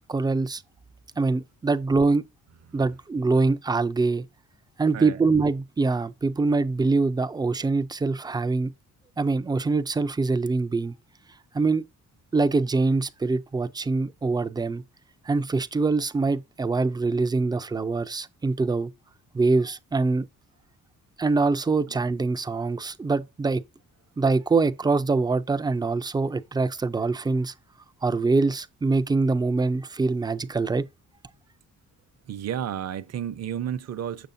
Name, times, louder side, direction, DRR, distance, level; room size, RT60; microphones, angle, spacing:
voice 1, 0.1-0.6 1.2-2.2 2.7-4.2 4.8-8.7 9.2-10.9 11.5-11.8 12.3-14.8 15.2-18.9 19.3-20.3 21.2-23.6 24.2-27.5 28.0-30.9, right 3 dB, 15° right, 0.4 m, -24 dB
voice 2, 32.3-34.3, right 9 dB, 50° right, 0.7 m, -32 dB
6.8 x 6.6 x 2.6 m
cardioid pair, 115°, 33 cm